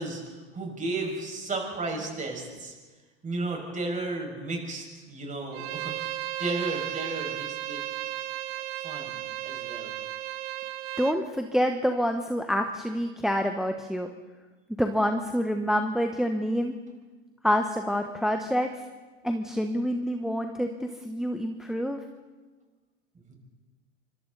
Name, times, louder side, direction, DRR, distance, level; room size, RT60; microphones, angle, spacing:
voice 1, 0.0-2.7 3.2-7.8 8.8-9.9 23.1-23.3, right 2 dB, 20° right, 1 dB, 6.4 m, -34 dB
Bowed string instrument, 5.5-11.2, right 14 dB, 60° right, 1.5 m, -34 dB
voice 2, 11.0-14.1 14.8-16.7 17.4-18.8 19.2-22.0, equal, ahead, 5 dB, 1.3 m, -27 dB
26.0 x 25.0 x 4.2 m, 1.3 s
hypercardioid pair, 100°, 35 cm